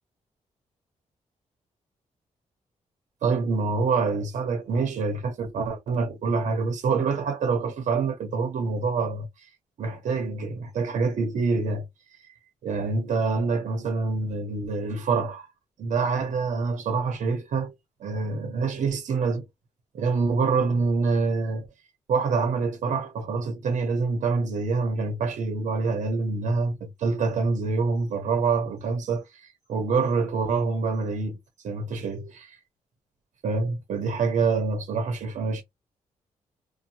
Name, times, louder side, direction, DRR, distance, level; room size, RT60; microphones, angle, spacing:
voice 1, 3.2-9.3 9.8-11.8 12.6-15.5 15.8-17.7 18.0-19.4 19.9-21.7 22.1-31.4 31.6-32.6 33.4-35.6, right 4 dB, 75° right, 0.8 m, -26 dB
2.6 x 2.2 x 2.8 m
wide cardioid pair, 130°, 13 cm